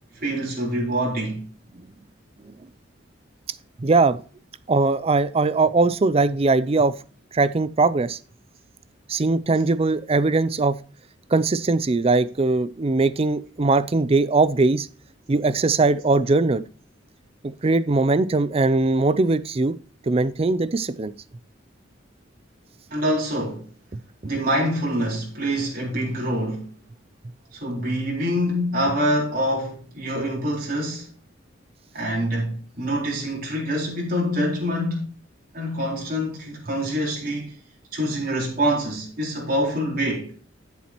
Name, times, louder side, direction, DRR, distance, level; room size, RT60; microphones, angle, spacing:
voice 1, 0.2-1.5 22.9-23.7 24.2-26.6 27.5-31.1 31.9-35.1 35.5-37.5 37.9-40.3, equal, 50° right, 4.2 m, -25 dB
voice 2, 3.8-4.2 4.7-6.9 7.3-8.2 9.1-10.8 11.3-14.9 15.3-16.6 17.4-19.8 20.1-21.1, right 3 dB, 30° right, 0.5 m, -20 dB
12.5 x 7.3 x 3.0 m
head